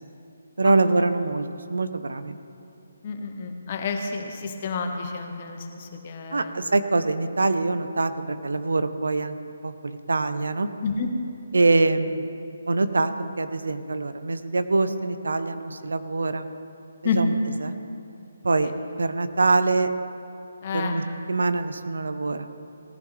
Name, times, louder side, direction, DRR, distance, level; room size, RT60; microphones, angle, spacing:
voice 1, 0.6-2.4 6.3-9.4 9.6-10.7 11.5-12.3 12.7-16.5 17.1-17.3 17.6-17.7 18.4-18.7 19.0-19.9 20.7-22.5, right 3 dB, 70° right, 11 dB, 0.7 m, -24 dB
voice 2, 3.0-6.5 10.8-11.1 17.0-17.2 18.6-18.7 20.6-21.0, left 5 dB, 40° left, 3 dB, 1.5 m, -30 dB
18.5 x 11.0 x 3.4 m, 2.7 s
figure-of-eight pair, 145°, 0 cm